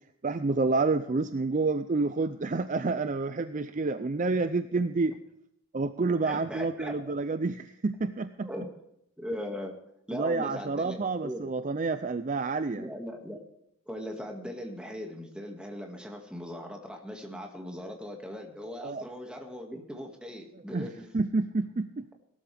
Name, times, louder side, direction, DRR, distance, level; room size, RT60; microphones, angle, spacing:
voice 1, 0.2-5.1 5.7-8.5 10.1-12.9 18.8-19.0 20.7-22.1, right 3 dB, 35° right, 11 dB, 0.4 m, -29 dB
voice 2, 6.2-7.1 8.4-8.7 9.2-9.8 10.1-11.5 12.7-13.4 13.9-21.1, equal, 5° right, 1 dB, 2.0 m, -39 dB
18.0 x 13.0 x 3.5 m, 0.79 s
head